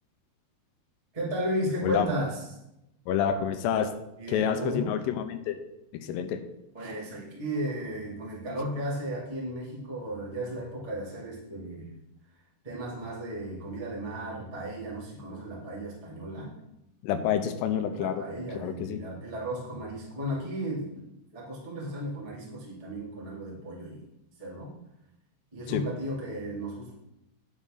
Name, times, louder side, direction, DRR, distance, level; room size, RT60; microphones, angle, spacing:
voice 1, 1.1-2.5 4.2-4.9 6.7-11.9 12.6-16.5 17.9-21.1 21.3-24.0 24.4-24.7 25.5-26.9, right 1 dB, 25° right, -6 dB, 0.7 m, -34 dB
voice 2, 3.1-3.9 4.3-5.6 6.0-6.4 17.0-18.2 18.6-19.0 25.7-25.8, left 9 dB, 85° left, 8 dB, 3.3 m, -28 dB
9.9 x 8.2 x 3.8 m, 0.87 s
omnidirectional pair, 5.8 m